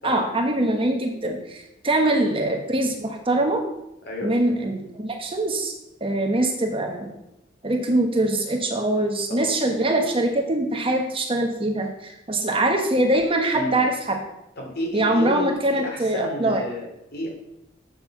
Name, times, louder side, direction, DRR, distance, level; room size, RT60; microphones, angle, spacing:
voice 1, 0.0-3.6 4.2-5.7 6.0-7.1 7.6-14.2 14.9-16.6, right 1 dB, 30° right, 3 dB, 1.2 m, -23 dB
voice 2, 4.0-4.3 9.3-9.5 13.5-13.7 14.6-17.3, left 1 dB, 55° left, 0 dB, 2.8 m, -32 dB
8.2 x 6.6 x 5.9 m, 0.85 s
head